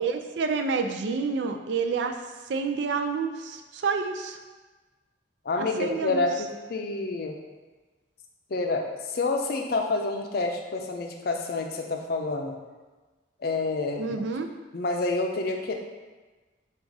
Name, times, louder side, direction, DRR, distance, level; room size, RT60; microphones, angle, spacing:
voice 1, 0.0-2.2 2.5-4.4 5.5-6.2 14.0-14.5, right 5 dB, 80° right, 6 dB, 0.4 m, -28 dB
voice 2, 5.5-7.4 8.5-12.6 13.4-14.2 14.7-15.7, left 3 dB, 60° left, 3 dB, 0.5 m, -28 dB
4.6 x 2.4 x 3.9 m, 1.3 s
head